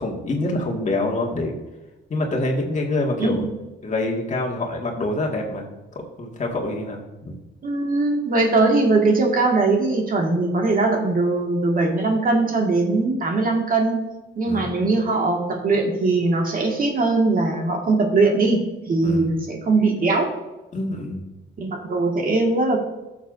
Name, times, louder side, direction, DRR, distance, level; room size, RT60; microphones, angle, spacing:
voice 1, 0.0-1.6 2.1-3.5 3.8-5.7 6.0-7.4 14.5-14.9 19.0-19.4 20.7-21.3, left 2 dB, 40° left, 0 dB, 1.9 m, -26 dB
voice 2, 3.2-3.5 7.6-14.0 14.4-18.6 18.9-20.3 21.6-22.8, right 3 dB, 45° right, 1 dB, 1.9 m, -20 dB
14.0 x 6.9 x 2.6 m, 1.1 s
cardioid pair, 90°, 20 cm